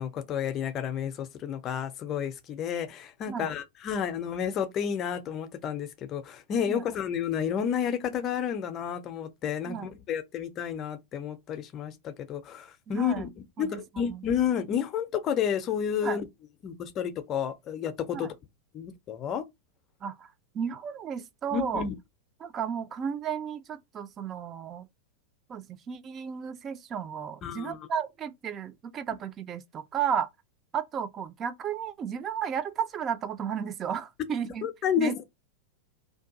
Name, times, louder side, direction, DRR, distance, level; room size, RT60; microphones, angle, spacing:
voice 1, 0.0-13.3 13.6-16.3 16.6-18.3 18.7-19.4 21.5-21.9 27.4-27.8 34.6-35.2, left 8 dB, 30° left, 0.5 m, -31 dB
voice 2, 12.9-13.2 13.6-13.8 14.1-14.2 16.0-16.2 18.1-18.3 20.0-20.3 20.5-21.8 22.4-24.9 25.5-30.3 30.7-34.7 35.0-35.2, right 7 dB, 25° right, 0.4 m, -33 dB
2.6 x 2.5 x 3.7 m
figure-of-eight pair, 90°, 0 cm